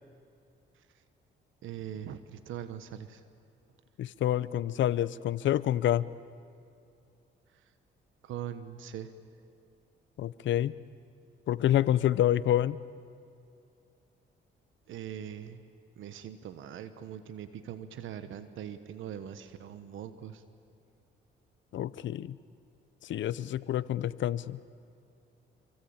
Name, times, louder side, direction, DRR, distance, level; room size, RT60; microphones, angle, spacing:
voice 1, 1.6-3.2 8.2-9.1 14.9-15.6 16.0-20.4, right 9 dB, 80° right, 11 dB, 1.3 m, -41 dB
voice 2, 4.0-6.1 10.2-10.7 11.5-12.8 21.7-22.4 23.0-24.6, left 12 dB, 70° left, 18 dB, 0.8 m, -28 dB
27.5 x 24.5 x 8.8 m, 2.5 s
cardioid pair, 90°, 20 cm